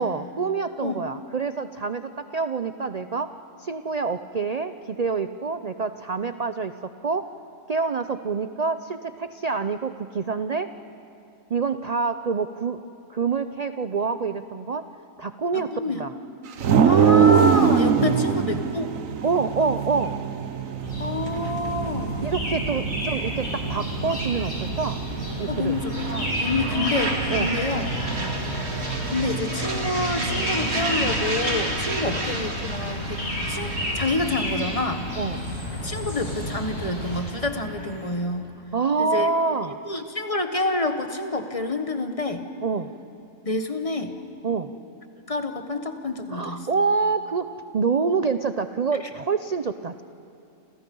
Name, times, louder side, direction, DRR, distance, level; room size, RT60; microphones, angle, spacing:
voice 1, 0.0-3.3 3.6-7.3 7.7-10.7 11.5-12.8 13.1-14.9 15.2-16.1 18.2-18.4 19.2-20.2 22.2-25.0 25.4-25.8 26.6-27.0 27.3-27.6 28.2-28.4 32.0-32.2 35.2-35.5 38.7-39.8 42.6-42.9 44.4-44.7 46.3-50.0, right 4 dB, 80° right, 10 dB, 0.3 m, -27 dB
voice 2, 15.5-16.0 16.8-18.9 21.0-22.1 25.5-27.1 27.4-27.9 29.1-33.2 33.5-35.0 35.8-38.5 39.0-39.3 39.8-42.5 43.4-44.1 45.3-46.7, left 2 dB, 25° left, 6 dB, 1.3 m, -28 dB
sound 1, 16.6-29.4, right 7 dB, 65° right, 1.3 m, -25 dB
sound 2, 20.8-37.2, left 1 dB, 50° left, 7.1 m, -31 dB
sound 3, 23.3-38.2, right 2 dB, 45° right, 2.6 m, -33 dB
28.5 x 28.0 x 5.5 m, 2.8 s
omnidirectional pair, 1.6 m